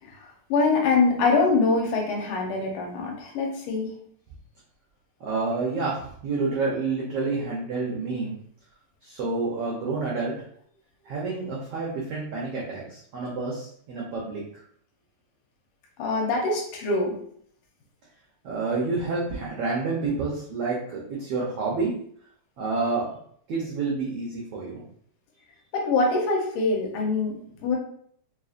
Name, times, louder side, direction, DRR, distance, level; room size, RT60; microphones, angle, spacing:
voice 1, 0.0-3.9 16.0-17.1 25.7-27.8, left 3 dB, 75° left, 0 dB, 2.3 m, -24 dB
voice 2, 5.2-8.3 9.0-10.3 11.0-14.6 18.4-21.9 22.6-23.0 23.5-24.8, right 3 dB, 85° right, -4 dB, 1.3 m, -29 dB
5.3 x 2.8 x 2.5 m, 0.63 s
omnidirectional pair, 3.7 m